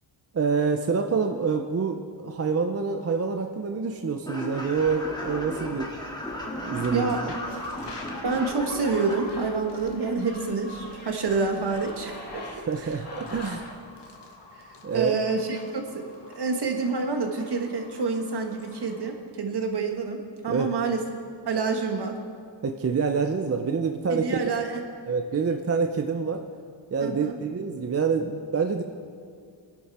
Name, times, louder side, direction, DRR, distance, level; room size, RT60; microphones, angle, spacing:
voice 1, 0.3-6.0 6.7-7.3 12.7-13.6 14.8-15.2 20.5-20.7 22.6-24.5 25.1-26.5 26.9-28.8, right 5 dB, 30° right, 5 dB, 0.6 m, -27 dB
sound 1, 4.2-9.2, left 1 dB, 10° left, 2.4 m, -35 dB
sound 2, 4.5-13.7, left 2 dB, 30° left, 2.4 m, -44 dB
sound 3, 6.6-19.2, left 3 dB, 60° left, 1.8 m, -50 dB
voice 2, 8.2-12.5 13.4-13.6 14.9-21.0 21.5-22.2 24.1-24.8 27.0-27.4, right 4 dB, 55° right, 3 dB, 1.8 m, -28 dB
24.0 x 11.0 x 4.3 m, 2.2 s
wide cardioid pair, 150°, 48 cm